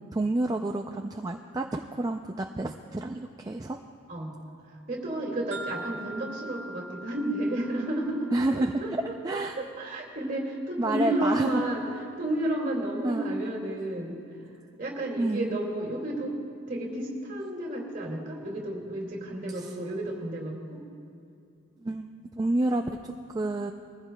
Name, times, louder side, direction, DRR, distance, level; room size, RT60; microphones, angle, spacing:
voice 1, 0.1-3.8 8.3-9.6 10.8-11.6 13.0-13.3 15.2-15.6 21.8-23.7, right 2 dB, 20° right, 3 dB, 0.3 m, -29 dB
voice 2, 4.1-4.4 4.7-11.9 12.2-14.2 14.8-16.4 16.7-20.8, right 1 dB, 40° right, -2 dB, 2.3 m, -32 dB
sound 1, 5.5-9.5, right 2 dB, 75° right, 1.7 m, -43 dB
21.5 x 15.0 x 2.2 m, 2.5 s
head